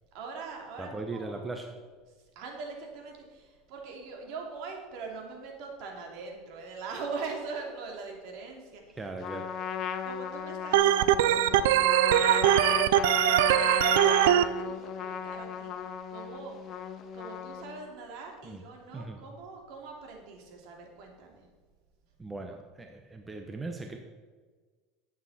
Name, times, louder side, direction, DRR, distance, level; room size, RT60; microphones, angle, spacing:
voice 1, 0.1-1.5 2.1-9.0 10.0-16.6 17.1-21.5, right 4 dB, 65° right, 1 dB, 2.8 m, -42 dB
voice 2, 0.8-1.7 9.0-9.4 18.4-18.6 18.9-19.2 22.2-24.0, right 3 dB, 15° right, 4 dB, 0.9 m, -38 dB
Trumpet, 9.2-17.9, left 8 dB, 40° left, 0.8 m, -36 dB
Organ, 10.7-14.4, right 12 dB, 85° right, 0.5 m, -22 dB
12.0 x 8.5 x 4.2 m, 1.4 s
supercardioid pair, 135°, 0 cm